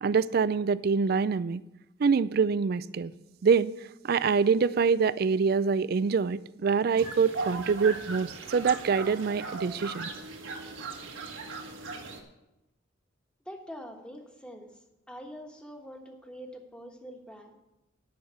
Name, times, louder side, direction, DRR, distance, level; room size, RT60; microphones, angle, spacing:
voice 1, 0.0-1.6 2.0-3.1 3.4-3.7 4.0-10.1, right 5 dB, 50° right, 0.4 m, -25 dB
sound 1, 7.0-12.2, right 3 dB, 75° right, 1.6 m, -38 dB
voice 2, 13.4-14.8 15.1-17.6, equal, 5° left, 1.3 m, -44 dB
10.5 x 6.3 x 8.1 m
head